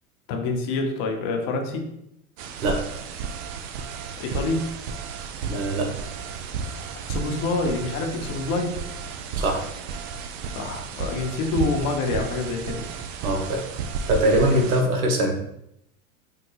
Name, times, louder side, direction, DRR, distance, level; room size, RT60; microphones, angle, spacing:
voice 1, 0.3-1.9 4.2-4.6 7.1-8.8 10.5-12.8 14.5-14.6, left 3 dB, 45° left, 2 dB, 0.8 m, -27 dB
sound 1, 2.4-14.8, right 5 dB, 50° right, 0.4 m, -33 dB
voice 2, 5.5-5.9 9.3-9.6 13.2-13.6 14.1-15.4, right 1 dB, 80° right, 2 dB, 0.8 m, -22 dB
3.6 x 2.3 x 3.0 m, 0.79 s
hypercardioid pair, 105°, 43 cm